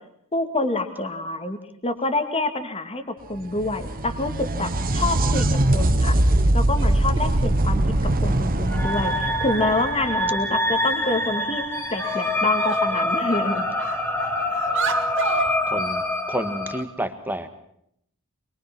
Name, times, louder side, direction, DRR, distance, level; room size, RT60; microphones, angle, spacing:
voice 1, 0.3-1.6 1.8-3.0 3.3-6.2 6.5-7.8 8.2-11.6 11.9-13.7, left 2 dB, 25° left, 7 dB, 2.1 m, -27 dB
sound 1, 3.3-10.9 14.3-14.4 15.5-15.6, right 1 dB, 40° right, 1.3 m, -22 dB
sound 2, 5.3-5.6 6.7-7.6 8.8-8.9 9.3-9.4 9.7-9.8 10.1-10.8 11.4-11.5 12.0-13.0 13.3-15.6, right 5 dB, 60° right, 2.0 m, -32 dB
sound 3, 8.7-16.8, left 1 dB, 10° left, 3.2 m, -25 dB
voice 2, 15.7-17.5, right 1 dB, 10° right, 8 dB, 1.8 m, -30 dB
24.5 x 22.5 x 6.1 m, 0.72 s
head